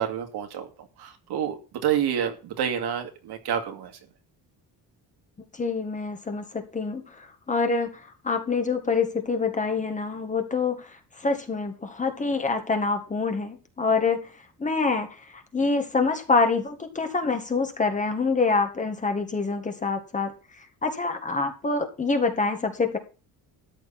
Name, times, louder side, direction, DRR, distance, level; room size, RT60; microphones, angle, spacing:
voice 1, 0.0-3.9, right 9 dB, 70° right, 4 dB, 2.6 m, -28 dB
voice 2, 5.5-10.9 11.2-14.3 14.6-15.1 15.5-20.3 20.8-23.0, left 4 dB, 20° left, 5 dB, 1.8 m, -26 dB
13.5 x 9.5 x 4.3 m, 0.33 s
cardioid pair, 170°, 40 cm